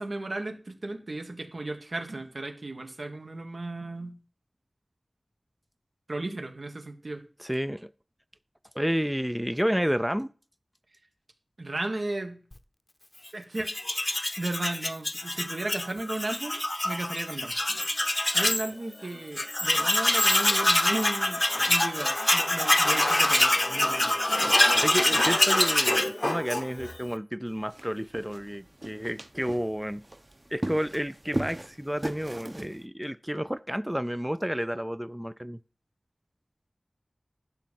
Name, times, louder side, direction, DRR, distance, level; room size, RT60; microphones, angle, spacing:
voice 1, 0.0-4.2 6.1-7.2 11.6-12.4 13.3-13.7 14.4-17.5 18.3-24.1, right 2 dB, 75° right, 4 dB, 1.7 m, -35 dB
voice 2, 7.4-7.9 8.8-10.3 24.8-30.0 30.5-35.6, equal, 5° right, 14 dB, 0.4 m, -30 dB
Tools, 13.6-18.7 19.0-19.1 19.4-27.0, left 1 dB, 35° left, 0.8 m, -25 dB
sound 1, 27.5-32.8, right 1 dB, 35° right, 1.0 m, -38 dB
11.5 x 4.0 x 7.5 m, 0.37 s
wide cardioid pair, 50°, 0 cm